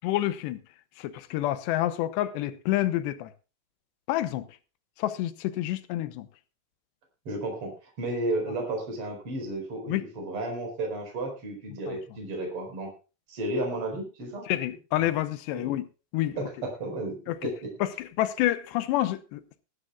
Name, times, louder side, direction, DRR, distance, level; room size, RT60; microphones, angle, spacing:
voice 1, 0.0-0.6 1.0-3.3 4.1-4.5 5.0-6.3 9.9-10.0 11.9-12.0 14.5-15.9 16.1-16.4 17.3-17.5 17.8-19.6, left 14 dB, 90° left, 3.1 m, -28 dB
voice 2, 7.3-12.9 13.3-14.4 15.0-15.1 15.5-15.7 16.3-17.7, right 2 dB, 35° right, 5.2 m, -33 dB
19.5 x 12.5 x 2.3 m
omnidirectional pair, 4.9 m